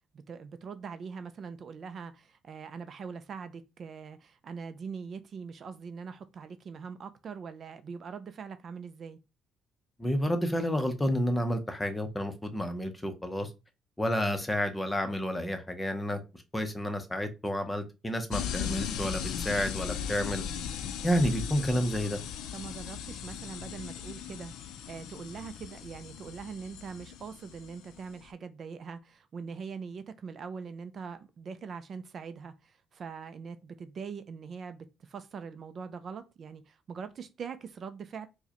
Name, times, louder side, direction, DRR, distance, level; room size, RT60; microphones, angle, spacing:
voice 1, 0.1-9.2 22.5-38.3, right 5 dB, 45° right, 0.3 m, -42 dB
voice 2, 10.0-13.5 14.0-20.4 21.0-22.2, equal, 10° left, 0.6 m, -30 dB
sound 1, 18.3-28.2, left 8 dB, 85° left, 0.4 m, -38 dB
4.6 x 2.1 x 2.9 m
cardioid pair, 120°, 0 cm